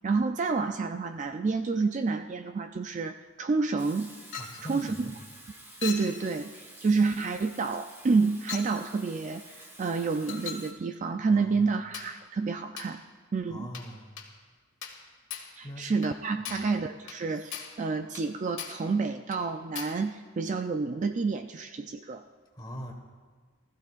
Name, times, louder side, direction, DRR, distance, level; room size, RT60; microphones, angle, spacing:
voice 1, 0.0-4.1 4.6-5.1 5.8-13.0 13.3-13.7 15.6-22.2, right 4 dB, 35° right, 8 dB, 0.3 m, -29 dB
Water tap faucet / Sink (filling or washing), 3.8-10.7, right 1 dB, 10° right, 1.1 m, -50 dB
Chink clink, 4.3-4.6 5.8-6.2 7.2-7.3 8.5-8.7 10.3-10.7 11.9-12.2 12.8-13.0 13.7-13.9 14.2-14.3 14.8-15.0 15.3-15.5 16.0-16.1 16.4-16.7 17.1-17.2 17.5-17.8 18.1-18.3 18.6-18.9 19.3-19.4 19.7-20.0, left 7 dB, 60° left, 1.7 m, -39 dB
voice 2, 4.3-5.1 11.3-11.8 13.5-14.1 15.6-15.9 16.5-16.7 22.5-22.9, equal, 20° left, 1 dB, 1.5 m, -42 dB
19.5 x 14.5 x 2.5 m, 1.5 s
head